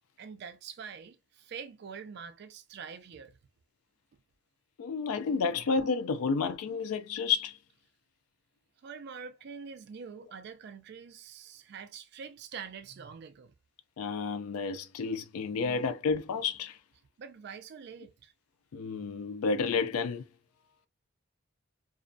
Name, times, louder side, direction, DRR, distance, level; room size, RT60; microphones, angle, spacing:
voice 1, 0.2-3.4 5.6-5.7 8.8-13.5 17.2-18.3, right 6 dB, 50° right, 0.3 m, -45 dB
voice 2, 4.8-7.6 14.0-16.8 18.7-20.3, left 5 dB, 90° left, 0.4 m, -30 dB
2.4 x 2.2 x 2.5 m
head